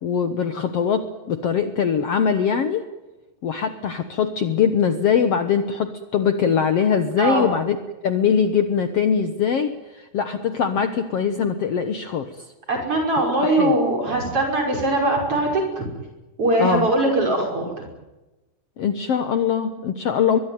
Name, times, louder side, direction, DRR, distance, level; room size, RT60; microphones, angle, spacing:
voice 1, 0.0-2.9 3.4-7.8 8.0-12.3 13.4-13.8 16.6-16.9 18.8-20.4, left 7 dB, 60° left, 9 dB, 1.8 m, -22 dB
voice 2, 7.2-7.5 12.7-15.8 16.4-17.8, right 2 dB, 40° right, 2 dB, 6.6 m, -21 dB
23.0 x 22.5 x 9.5 m, 1.1 s
omnidirectional pair, 3.8 m